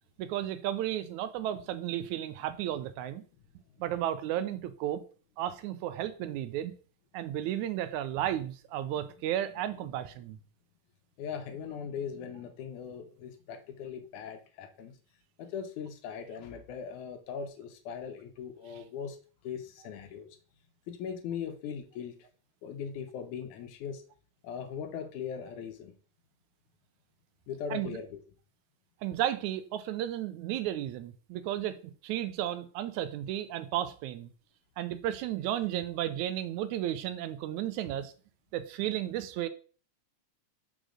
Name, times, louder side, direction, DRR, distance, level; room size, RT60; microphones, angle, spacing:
voice 1, 0.2-3.2 3.8-5.0 5.4-6.7 7.1-10.4 27.7-28.0 29.0-31.8 32.0-34.3 34.8-38.1 38.5-39.5, right 12 dB, 80° right, 2.0 m, -33 dB
voice 2, 11.2-14.9 15.4-19.2 19.4-20.3 20.9-22.2 22.6-24.0 24.4-25.9 27.5-28.2, left 7 dB, 80° left, 2.4 m, -39 dB
5.2 x 5.1 x 6.3 m
omnidirectional pair, 3.5 m